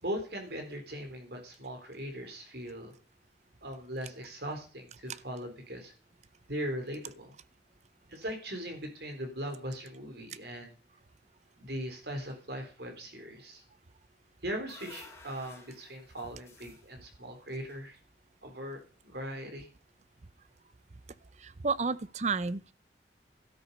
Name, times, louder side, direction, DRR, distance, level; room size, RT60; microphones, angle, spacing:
voice 1, 0.0-2.9 3.6-5.9 6.5-7.4 8.1-10.7 11.6-13.6 14.4-18.0 18.4-18.8 19.0-19.7, equal, 60° right, 3.7 m, -39 dB
sound 1, 14.2-18.5, left 3 dB, 15° left, 3.6 m, -55 dB
voice 2, 21.4-22.7, right 4 dB, 40° right, 0.6 m, -31 dB
13.0 x 12.5 x 5.4 m
head